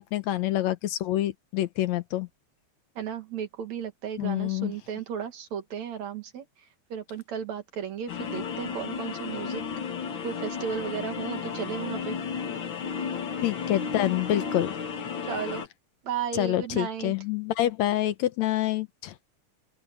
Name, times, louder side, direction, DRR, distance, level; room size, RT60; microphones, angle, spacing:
voice 1, 0.0-2.3 4.2-4.7 13.4-14.8 16.3-19.1, left 13 dB, 70° left, 2.0 m, -27 dB
voice 2, 3.0-6.4 6.9-9.6 10.2-12.2 15.3-15.6 16.0-17.1, right 8 dB, 70° right, 3.2 m, -34 dB
sound 1, 8.1-15.7, left 6 dB, 50° left, 1.9 m, -33 dB
open air
omnidirectional pair, 3.4 m